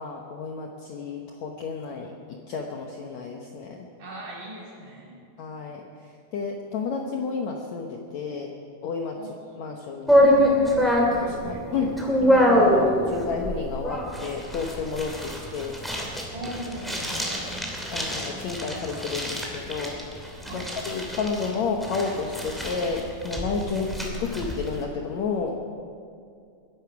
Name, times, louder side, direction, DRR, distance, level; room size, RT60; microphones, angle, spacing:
voice 1, 0.0-3.9 5.4-8.5 8.8-9.2 9.6-10.3 11.0-11.1 11.4-15.8 17.9-20.0 20.5-25.6, left 5 dB, 70° left, 1 dB, 1.8 m, -31 dB
voice 2, 4.0-5.2 9.1-9.3 10.1-11.9 16.3-17.6 20.5-20.8 23.7-24.2, right 1 dB, 55° right, -5 dB, 5.3 m, -38 dB
sound 1, 10.1-24.8, equal, ahead, 1.8 m, -25 dB
22.0 x 11.0 x 5.9 m, 2.4 s
omnidirectional pair, 4.4 m